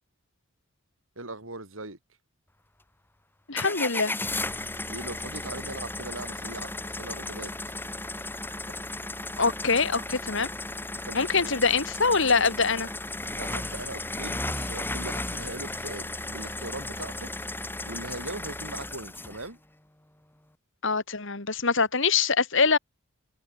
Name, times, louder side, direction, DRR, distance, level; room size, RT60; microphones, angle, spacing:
voice 1, 1.2-2.2 4.9-7.8 11.0-11.5 13.4-17.3 17.8-19.6, right 2 dB, 70° right, 5.9 m, -40 dB
voice 2, 3.5-4.1 9.4-10.5 11.1-12.9 20.8-22.8, left 4 dB, 65° left, 2.4 m, -24 dB
sound 1, 3.6-19.5, left 2 dB, 10° left, 2.8 m, -35 dB
head